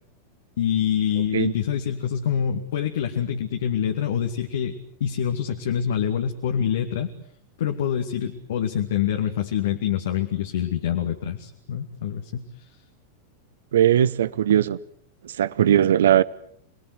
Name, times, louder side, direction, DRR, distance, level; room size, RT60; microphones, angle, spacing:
voice 1, 0.6-7.1 7.6-12.6, left 9 dB, 60° left, 2.3 m, -26 dB
voice 2, 13.7-14.8 15.2-16.2, right 10 dB, 60° right, 1.1 m, -19 dB
29.5 x 21.5 x 8.1 m
figure-of-eight pair, 90°, 0 cm